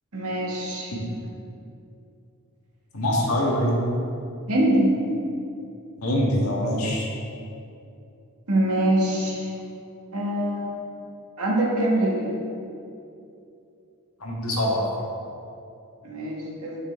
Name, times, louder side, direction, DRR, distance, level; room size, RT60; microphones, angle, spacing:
voice 1, 0.1-0.9 4.5-5.0 8.5-9.5 10.1-10.8 11.4-12.3 16.0-16.8, right 1 dB, 80° right, -3 dB, 1.7 m, -24 dB
voice 2, 2.9-3.8 6.0-7.1 14.2-14.8, equal, 80° left, -3 dB, 1.6 m, -24 dB
9.6 x 5.8 x 3.5 m, 2.7 s
head